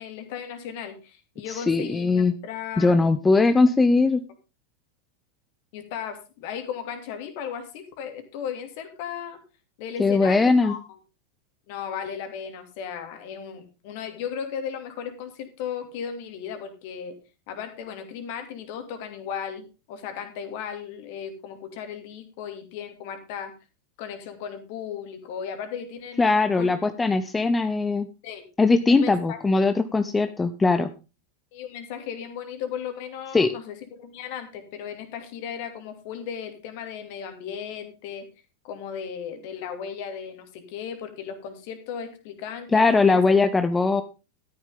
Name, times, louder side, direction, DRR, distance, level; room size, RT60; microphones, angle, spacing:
voice 1, 0.0-3.1 5.7-9.4 9.8-10.8 11.7-17.2 17.5-23.5 24.0-26.7 28.2-28.5 28.9-29.4 31.5-38.3 38.6-43.2, left 8 dB, 50° left, 7 dB, 2.8 m, -36 dB
voice 2, 1.5-2.3 2.8-4.2 10.0-10.7 26.2-28.1 28.6-30.9 33.3-33.5 42.7-44.0, left 3 dB, 10° left, 10 dB, 0.7 m, -20 dB
13.0 x 10.0 x 3.6 m, 0.31 s
figure-of-eight pair, 90°, 0 cm